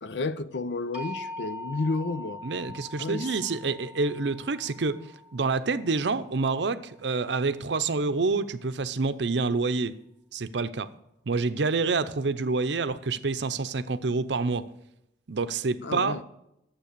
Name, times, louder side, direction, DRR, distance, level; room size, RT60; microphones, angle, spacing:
voice 1, 0.0-2.4 3.0-3.4 15.8-16.2, left 3 dB, 65° left, 0.6 m, -31 dB
sound 1, 0.9-6.9, left 2 dB, 5° right, 1.6 m, -42 dB
voice 2, 2.4-9.9 10.3-10.9 11.3-14.6 15.3-16.2, right 4 dB, 65° right, 0.6 m, -27 dB
12.0 x 7.7 x 6.7 m
head